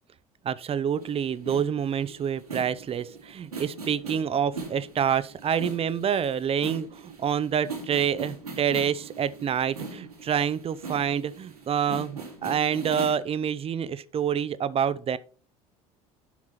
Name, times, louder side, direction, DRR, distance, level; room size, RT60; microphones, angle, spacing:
voice 1, 0.4-15.2, right 8 dB, 30° right, 0.8 m, -27 dB
sound 1, 1.0-13.2, right 3 dB, 90° right, 2.7 m, -40 dB
11.0 x 6.0 x 4.3 m
figure-of-eight pair, 65°, 19 cm